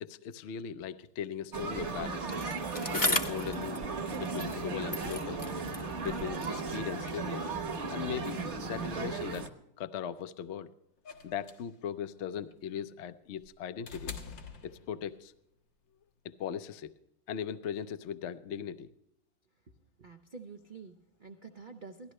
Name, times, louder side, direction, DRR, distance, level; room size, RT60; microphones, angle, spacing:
voice 1, 0.0-2.4 2.9-3.8 4.2-5.5 6.0-7.5 7.9-9.5 9.8-10.7 11.2-14.1 14.6-15.3 16.2-16.9 17.3-18.9, left 8 dB, 65° left, 10 dB, 0.7 m, -38 dB
sound 1, 1.5-9.5, right 4 dB, 45° right, 1.2 m, -36 dB
Bicycle, 2.3-4.7 4.9-7.3 8.1-8.2, left 1 dB, 15° left, 0.7 m, -36 dB
sound 2, 11.1-15.3 16.6-16.7, left 5 dB, 90° left, 2.1 m, -46 dB
voice 2, 20.0-22.1, right 4 dB, 70° right, 5 dB, 0.4 m, -48 dB
17.0 x 13.5 x 3.2 m, 0.82 s
omnidirectional pair, 2.0 m